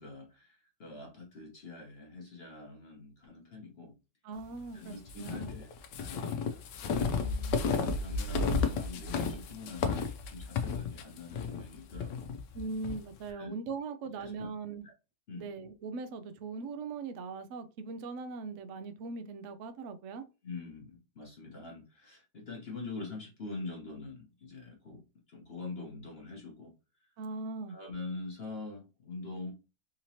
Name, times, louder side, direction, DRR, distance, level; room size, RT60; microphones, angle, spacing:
voice 1, 0.0-3.9 4.7-7.2 7.9-12.3 13.3-13.5 14.2-14.5 14.8-14.9 15.3-15.5 20.4-25.0 25.3-26.7 27.7-29.5, left 3 dB, 45° left, 1.0 m, -44 dB
voice 2, 4.2-5.6 7.2-7.7 12.5-14.8 15.4-20.2 27.2-27.8, right 4 dB, 85° right, 0.6 m, -40 dB
sound 1, 5.1-13.0, left 4 dB, 80° left, 1.3 m, -33 dB
3.9 x 2.9 x 2.8 m
omnidirectional pair, 1.8 m